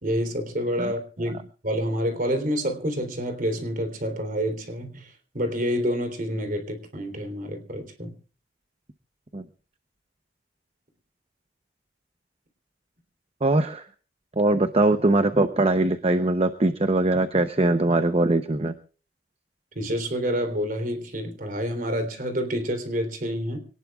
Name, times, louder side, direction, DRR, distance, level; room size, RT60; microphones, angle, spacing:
voice 1, 0.0-8.1 19.7-23.6, equal, 50° right, 7 dB, 3.4 m, -28 dB
voice 2, 13.4-13.9 14.4-18.7, right 2 dB, 35° right, 9 dB, 0.8 m, -21 dB
25.0 x 18.5 x 2.4 m, 0.38 s
head